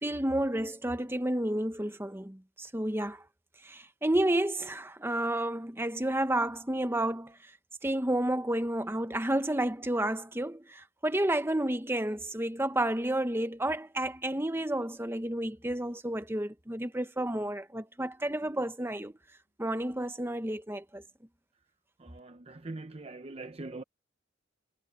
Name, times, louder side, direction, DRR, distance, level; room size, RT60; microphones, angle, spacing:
voice 1, 0.0-3.2 3.6-7.5 7.8-19.1 19.6-21.0, right 1 dB, 10° right, 1.0 m, -31 dB
voice 2, 22.0-23.8, right 2 dB, 30° right, 0.7 m, -42 dB
head